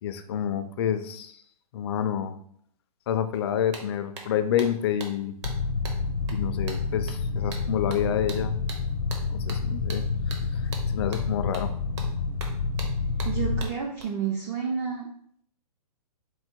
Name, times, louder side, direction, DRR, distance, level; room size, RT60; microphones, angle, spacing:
voice 1, 0.0-1.4 1.7-2.3 3.1-5.3 6.3-8.6 9.3-10.1 10.9-11.7, left 9 dB, 40° left, 10 dB, 0.4 m, -28 dB
sound 1, 3.3-3.4 3.7-14.0, right 4 dB, 50° right, 0.9 m, -43 dB
sound 2, 5.4-13.6, left 4 dB, 80° left, 0.8 m, -29 dB
voice 2, 13.2-15.1, right 6 dB, 25° right, 1 dB, 0.4 m, -30 dB
4.4 x 2.1 x 4.4 m, 0.66 s
hypercardioid pair, 140°, 20 cm